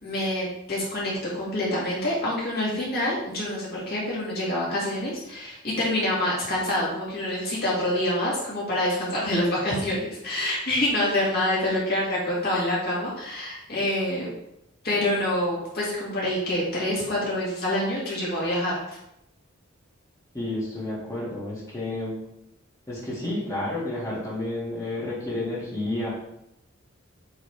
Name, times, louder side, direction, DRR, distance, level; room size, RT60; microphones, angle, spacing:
voice 1, 0.0-14.3 14.8-19.0, left 1 dB, 50° left, -6 dB, 2.0 m, -26 dB
voice 2, 20.3-22.2 22.9-26.1, left 1 dB, 15° left, -7 dB, 2.0 m, -30 dB
8.2 x 4.0 x 3.3 m, 0.83 s
head